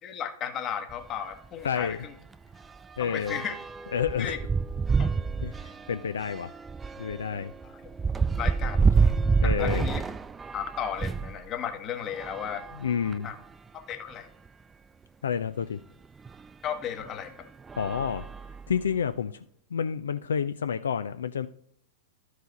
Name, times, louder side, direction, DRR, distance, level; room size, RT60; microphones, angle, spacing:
voice 1, 0.0-2.1 3.0-3.6 4.2-4.4 5.0-5.1 7.6-7.9 8.4-9.1 9.4-10.0 10.5-12.6 13.2-13.4 13.7-14.3 16.6-17.5, left 8 dB, 30° left, 8 dB, 1.1 m, -35 dB
sound 1, 0.9-1.1 1.4-1.6 1.9-11.4 12.1-13.4 14.1-14.2 14.5-14.6 16.3-16.4 17.0-17.3 17.7-18.9, right 5 dB, 15° right, 0.3 m, -28 dB
voice 2, 1.6-2.0 3.0-3.4 3.9-4.4 5.4-6.5 7.0-7.5 9.4-9.9 12.8-13.3 15.2-15.8 17.8-18.3 18.7-19.4 19.7-21.5, left 7 dB, 75° left, 11 dB, 0.3 m, -29 dB
12.5 x 4.7 x 4.0 m, 0.65 s
figure-of-eight pair, 105°, 0 cm